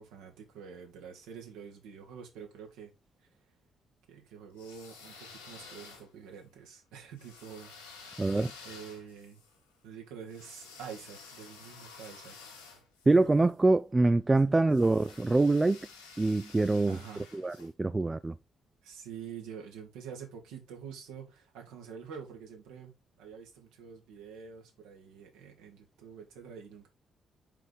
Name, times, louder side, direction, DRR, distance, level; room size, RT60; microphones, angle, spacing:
voice 1, 0.0-2.9 3.2-3.3 4.1-9.4 9.8-12.3 13.2-13.3 14.5-14.6 16.9-17.3 18.8-26.9, right 7 dB, 65° right, 1.8 m, -47 dB
sound 1, 4.5-6.4 7.2-13.5 14.7-17.7, left 4 dB, 80° left, 2.2 m, -51 dB
voice 2, 8.2-8.5 13.1-15.8 16.2-17.0 17.3-18.4, right 2 dB, 20° right, 0.4 m, -25 dB
5.7 x 5.3 x 3.8 m
figure-of-eight pair, 40°, 0 cm